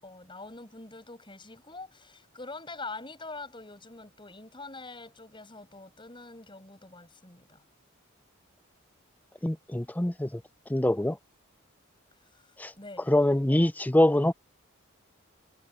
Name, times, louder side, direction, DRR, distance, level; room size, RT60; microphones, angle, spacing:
voice 1, 0.0-7.6 12.3-13.1, left 3 dB, 25° left, 8.0 m, -44 dB
voice 2, 9.4-10.4 10.7-11.2 12.6-12.7 13.1-14.3, left 1 dB, 10° left, 0.5 m, -24 dB
head